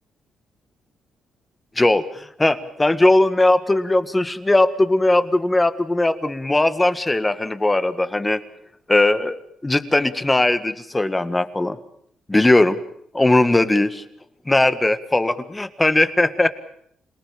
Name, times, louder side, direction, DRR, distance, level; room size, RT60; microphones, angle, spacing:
voice 1, 1.8-8.4 8.9-11.8 12.3-12.8 13.1-14.0 14.5-16.5, left 2 dB, 15° left, 11 dB, 1.7 m, -19 dB
27.0 x 19.0 x 7.5 m, 0.68 s
cardioid pair, 90°, 0 cm